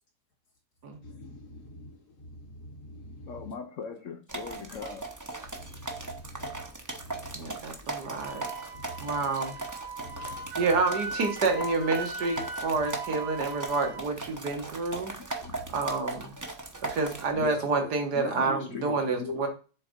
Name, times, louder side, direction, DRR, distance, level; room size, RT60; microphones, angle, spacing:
voice 1, 1.0-3.5 5.4-8.3 8.7-9.2 10.0-10.6 15.4-15.9, equal, 75° left, 2.6 m, -47 dB
voice 2, 3.3-5.1 15.4-15.5 17.3-19.4, left 6 dB, 60° left, 1.0 m, -39 dB
sound 1, 4.3-17.3, right 2 dB, 15° right, 0.7 m, -38 dB
voice 3, 7.3-8.5 9.0-9.6 10.2-10.3 10.6-15.1 15.7-16.3 16.9-19.5, right 3 dB, 80° right, 2.0 m, -29 dB
Wind instrument woodwind instrument, 8.2-14.0, right 3 dB, 60° right, 1.8 m, -39 dB
6.9 x 4.0 x 5.2 m
omnidirectional pair, 1.7 m